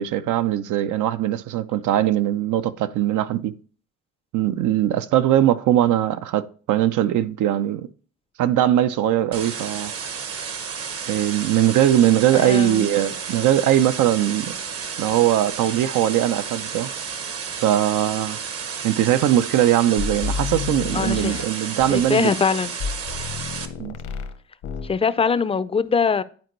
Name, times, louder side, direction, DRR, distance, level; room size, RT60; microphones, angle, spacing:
voice 1, 0.0-3.5 4.3-6.4 6.7-7.9 8.4-9.9 11.1-14.6 15.0-16.9 17.6-18.4 18.8-22.3 23.8-24.0, right 12 dB, 80° right, 0.6 m, -20 dB
sound 1, 9.3-23.7, right 6 dB, 50° right, 0.9 m, -32 dB
voice 2, 12.3-13.0 20.9-21.3 21.7-22.7 24.8-26.2, left 5 dB, 20° left, 0.4 m, -22 dB
sound 2, 20.0-22.1 22.8-24.4 24.6-25.0, left 6 dB, 75° left, 0.9 m, -30 dB
10.5 x 4.4 x 3.1 m
cardioid pair, 90°, 30 cm